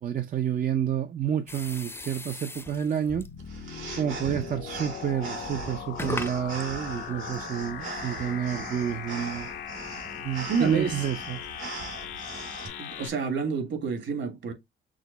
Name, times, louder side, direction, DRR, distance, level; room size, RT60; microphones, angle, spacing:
voice 1, 0.0-3.3 4.0-9.5 10.2-11.4, right 9 dB, 45° right, 0.5 m, -29 dB
sound 1, 1.5-3.4 4.3-4.5 5.2-5.3 5.9-9.0, left 2 dB, 10° left, 0.6 m, -40 dB
sound 2, 3.1-13.1, left 9 dB, 80° left, 1.0 m, -39 dB
sound 3, 3.4-12.7, right 4 dB, 85° right, 2.4 m, -40 dB
voice 2, 10.5-11.1 12.8-14.5, right 5 dB, 65° right, 1.9 m, -29 dB
6.2 x 2.1 x 3.9 m
cardioid pair, 90°, 20 cm